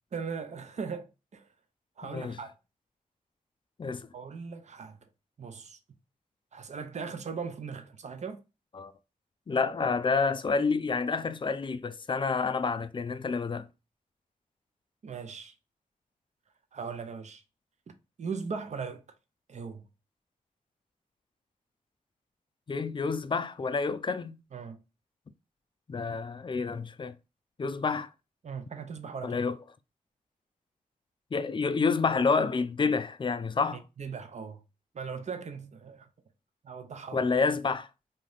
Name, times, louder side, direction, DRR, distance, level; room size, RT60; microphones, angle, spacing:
voice 1, 0.1-1.5 2.0-2.6 4.1-5.0 5.4-5.8 6.5-8.4 15.0-15.5 16.7-17.4 18.2-19.0 19.5-19.8 24.5-24.8 28.4-29.4 33.7-34.6 34.9-36.1 36.6-37.3, right 5 dB, 50° right, 0.6 m, -39 dB
voice 2, 2.0-2.4 3.8-4.1 8.8-8.9 9.5-13.7 22.7-24.4 25.9-27.1 27.6-28.1 29.2-29.6 31.3-33.8 37.1-37.9, left 4 dB, 35° left, 0.4 m, -29 dB
2.7 x 2.4 x 3.3 m
cardioid pair, 55°, 15 cm